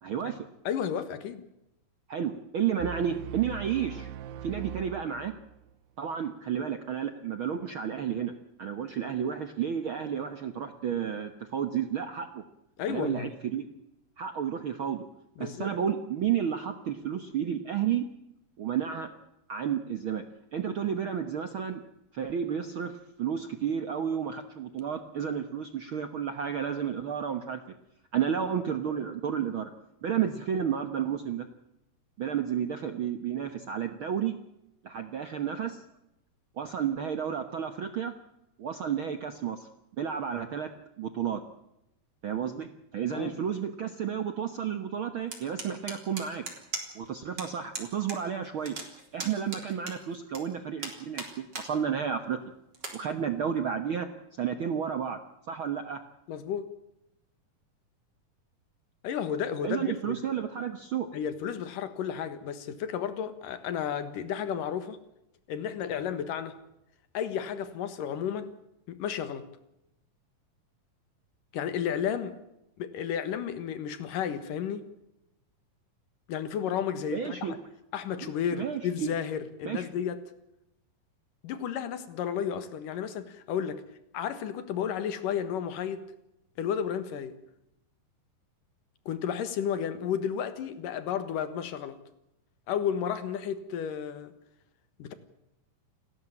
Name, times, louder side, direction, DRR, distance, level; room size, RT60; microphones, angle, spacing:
voice 1, 0.0-0.5 2.1-4.1 4.4-5.3 6.0-12.4 12.9-13.7 14.2-15.0 15.4-18.1 18.6-19.1 19.5-20.2 20.5-21.8 22.1-27.7 28.1-29.7 30.0-31.5 32.2-34.4 34.8-35.8 36.6-38.1 38.6-39.7 40.0-40.7 41.0-41.4 42.2-46.4 46.9-48.8 49.1-52.4 52.9-55.2 55.5-56.0 59.6-61.1 77.1-77.6 78.2-79.1 79.6-79.9, right 8 dB, 65° right, 8 dB, 1.3 m, -31 dB
voice 2, 0.6-1.4 12.8-13.3 15.4-15.7 43.1-43.3 56.3-56.7 59.0-60.2 61.1-65.0 65.5-66.6 67.1-68.5 68.9-69.5 71.5-72.4 72.8-74.9 76.3-77.6 77.9-80.2 81.4-83.8 84.1-86.0 86.6-87.3 89.1-92.0 92.7-94.3 95.0-95.1, left 8 dB, 75° left, 12 dB, 3.1 m, -32 dB
sound 1, 2.8-5.7, right 10 dB, 90° right, 2.7 m, -41 dB
sound 2, 45.3-47.1 47.4-47.5 47.7-48.2 48.4-50.4 50.8-51.7 52.1-52.2 52.7-53.0, right 3 dB, 30° right, 4.2 m, -38 dB
29.5 x 12.5 x 8.9 m, 0.86 s
omnidirectional pair, 3.9 m